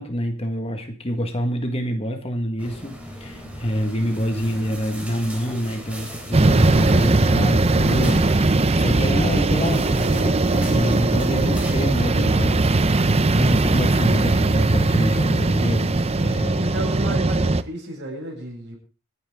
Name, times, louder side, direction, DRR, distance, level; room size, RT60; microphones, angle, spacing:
voice 1, 0.0-13.0 13.3-16.7, equal, 25° left, 5 dB, 1.7 m, -27 dB
sound 1, 2.6-13.2, equal, 5° right, 3.4 m, -39 dB
sound 2, 6.3-17.6, right 2 dB, 30° right, 0.6 m, -19 dB
voice 2, 16.5-18.8, right 1 dB, 55° right, 0 dB, 7.7 m, -33 dB
26.0 x 9.4 x 3.7 m, 0.36 s
head